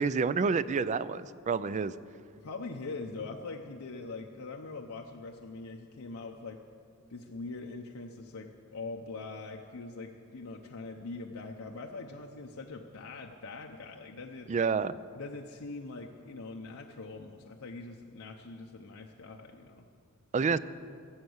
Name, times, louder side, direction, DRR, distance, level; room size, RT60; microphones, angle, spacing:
voice 1, 0.0-1.9 14.5-15.0 20.3-20.6, right 5 dB, 35° right, 16 dB, 0.3 m, -28 dB
voice 2, 2.4-6.6 7.1-14.5 15.1-19.8, left 3 dB, 80° left, 1 dB, 0.8 m, -42 dB
16.0 x 7.4 x 7.9 m, 2.3 s
head